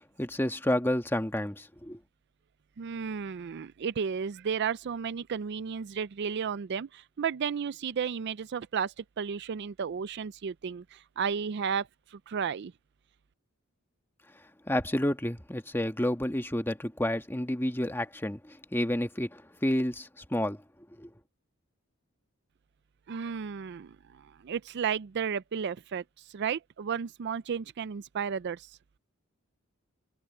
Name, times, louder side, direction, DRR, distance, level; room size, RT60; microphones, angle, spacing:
voice 1, 0.2-2.0 14.7-20.6 21.0-21.1, left 1 dB, 10° left, 1.4 m, -30 dB
voice 2, 2.8-10.8 11.2-11.9 12.3-12.7 23.1-23.9 24.4-26.0 26.3-28.6, right 7 dB, 55° right, 0.4 m, -33 dB
head